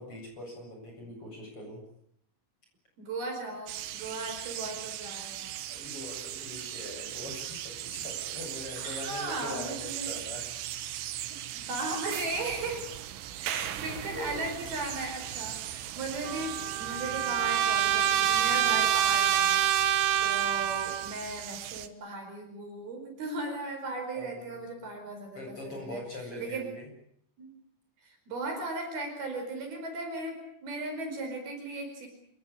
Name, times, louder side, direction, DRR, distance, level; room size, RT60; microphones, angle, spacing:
voice 1, 0.0-1.8 5.7-10.5 10.7-10.9 14.1-14.5 24.1-24.6 25.3-26.9, left 1 dB, 25° left, 1 dB, 8.3 m, -42 dB
voice 2, 3.0-5.5 8.8-10.1 11.5-12.9 13.4-19.6 20.2-26.0 26.4-26.7 27.4-27.5 28.0-32.1, right 2 dB, 50° right, 4 dB, 6.4 m, -37 dB
sound 1, 3.7-21.9, right 12 dB, 85° right, 3.8 m, -38 dB
Trumpet, 16.2-21.1, right 10 dB, 70° right, 3.5 m, -26 dB
27.0 x 17.0 x 9.9 m, 0.69 s
omnidirectional pair, 5.6 m